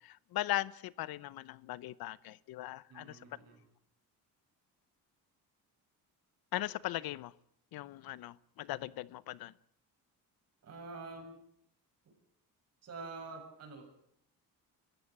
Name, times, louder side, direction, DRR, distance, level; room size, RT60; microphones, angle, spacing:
voice 1, 0.0-3.3 6.5-7.3 7.7-9.5, left 16 dB, 80° left, 0.9 m, -39 dB
voice 2, 2.9-3.6 10.6-11.4 12.8-13.9, right 3 dB, 45° right, 7.7 m, -47 dB
25.5 x 15.0 x 8.5 m
cardioid pair, 155°, 36 cm